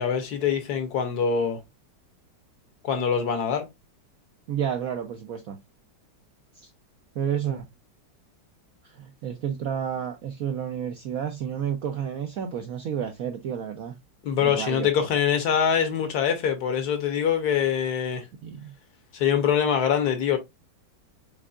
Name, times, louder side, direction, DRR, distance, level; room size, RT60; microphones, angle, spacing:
voice 1, 0.0-1.6 2.8-3.7 14.2-18.2 19.1-20.4, left 7 dB, 60° left, 1.3 m, -24 dB
voice 2, 4.5-5.6 6.6-6.7 7.2-7.6 8.8-14.0 14.4-14.9 18.4-18.7, right 8 dB, 70° right, 0.8 m, -31 dB
5.4 x 3.5 x 2.4 m
omnidirectional pair, 2.1 m